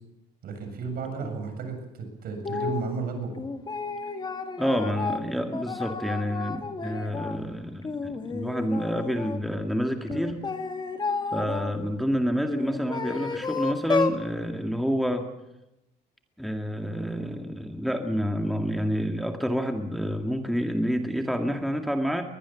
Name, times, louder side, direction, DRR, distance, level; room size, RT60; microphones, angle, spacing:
voice 1, 0.4-3.3, right 5 dB, 60° right, 6 dB, 7.3 m, -33 dB
sound 1, 2.4-2.9 3.4-7.4 7.8-9.4 10.1-11.7 12.5-14.2, left 4 dB, 25° left, 2.1 m, -31 dB
voice 2, 4.6-10.4 11.3-15.3 16.4-22.2, equal, ahead, 4 dB, 2.0 m, -28 dB
21.5 x 20.5 x 7.2 m, 0.92 s
cardioid pair, 110°, 17 cm